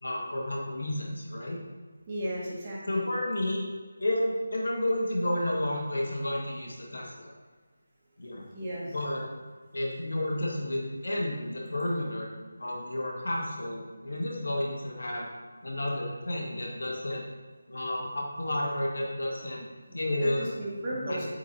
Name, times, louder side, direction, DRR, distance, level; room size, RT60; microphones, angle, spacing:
voice 1, 0.0-1.6 2.9-3.6 4.0-7.3 8.2-8.5 8.9-9.2 9.7-12.3 12.6-15.3 15.6-17.2 17.7-19.7 19.9-20.5 20.9-21.2, left 1 dB, 60° left, -2 dB, 1.7 m, -31 dB
voice 2, 2.1-3.0 8.5-8.8 20.2-21.2, right 1 dB, 25° right, -6 dB, 2.1 m, -34 dB
8.2 x 7.8 x 2.9 m, 1.5 s
figure-of-eight pair, 160°, 0 cm